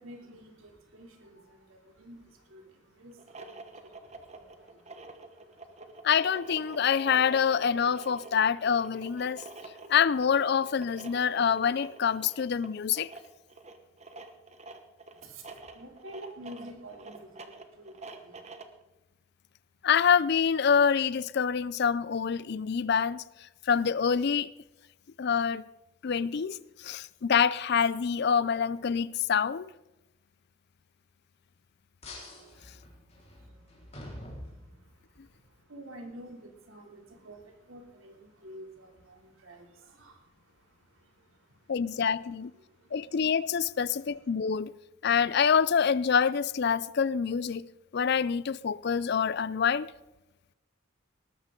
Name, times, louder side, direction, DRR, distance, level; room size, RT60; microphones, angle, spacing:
voice 1, 0.0-6.1 15.1-18.5 33.2-42.0 42.5-43.3 44.1-44.3, right 1 dB, 80° right, 3.0 m, -51 dB
sound 1, 3.1-18.8, right 3 dB, 30° right, 1.2 m, -47 dB
voice 2, 6.0-9.5 9.9-13.1 19.8-23.2 23.6-24.5 25.2-25.6 26.0-29.7 41.7-42.5 42.9-44.7 45.0-47.7 47.9-49.9, left 7 dB, 50° left, 0.4 m, -26 dB
sound 2, 32.0-35.2, left 1 dB, 30° left, 4.2 m, -46 dB
19.0 x 13.5 x 3.8 m
head